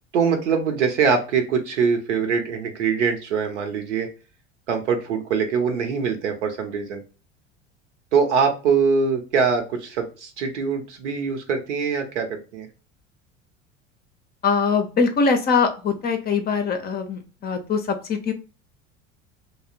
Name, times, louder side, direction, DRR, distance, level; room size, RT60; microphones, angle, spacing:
voice 1, 0.1-4.1 4.7-7.0 8.1-12.7, right 5 dB, 70° right, 5 dB, 0.8 m, -23 dB
voice 2, 14.4-18.3, left 5 dB, 25° left, 6 dB, 0.5 m, -22 dB
2.8 x 2.0 x 2.4 m, 0.34 s
figure-of-eight pair, 75°, 36 cm